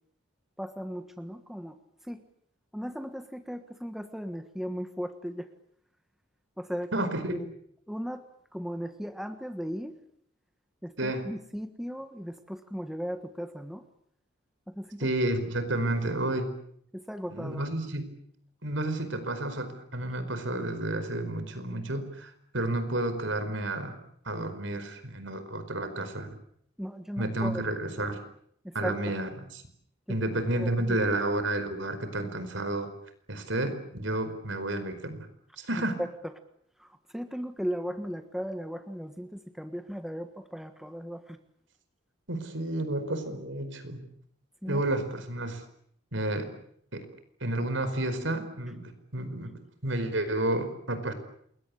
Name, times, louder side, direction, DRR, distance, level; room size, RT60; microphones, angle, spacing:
voice 1, 0.6-1.8 2.1-2.2 2.7-5.5 6.6-6.9 7.9-8.2 8.5-9.9 10.8-13.8 14.7-15.1 16.9-17.6 26.8-27.6 28.6-29.1 30.1-30.2 30.5-31.0 36.8-41.4 44.6-44.8, equal, ahead, 8 dB, 1.4 m, -37 dB
voice 2, 6.9-7.4 11.0-11.3 15.0-16.5 17.3-18.1 18.6-23.9 24.2-26.3 27.2-28.2 28.7-29.6 30.1-32.9 33.3-35.3 35.6-36.0 42.3-44.0 44.7-45.6 46.1-46.5 46.9-47.1 47.4-51.1, right 1 dB, 70° right, 10 dB, 4.9 m, -31 dB
28.5 x 22.0 x 8.5 m, 0.68 s
head